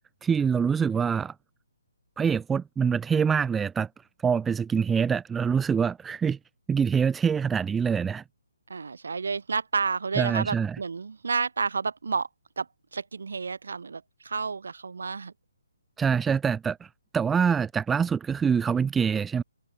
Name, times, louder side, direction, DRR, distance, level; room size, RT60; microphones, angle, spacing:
voice 1, 0.2-1.3 2.2-3.9 4.2-6.4 6.7-8.2 10.2-10.7 16.0-16.9 17.1-19.4, right 6 dB, 5° right, 1.1 m, -25 dB
voice 2, 8.7-12.3 12.6-15.3, right 5 dB, 75° right, 6.1 m, -30 dB
hypercardioid pair, 160°, 0 cm